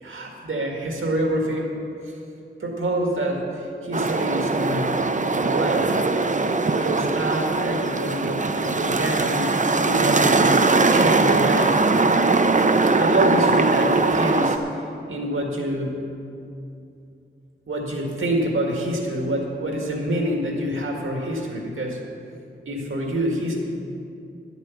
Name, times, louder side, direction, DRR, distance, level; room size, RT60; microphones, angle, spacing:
voice 1, 0.0-1.7 2.1-2.2 2.6-5.0 5.4-6.0 6.6-9.5 9.8-11.9 12.9-16.0 17.7-22.0 22.7-23.6, right 1 dB, 90° right, 0 dB, 1.9 m, -26 dB
sound 1, 3.9-14.6, right 3 dB, 40° right, 0.7 m, -20 dB
11.5 x 8.2 x 7.2 m, 2.6 s
wide cardioid pair, 60°, 20 cm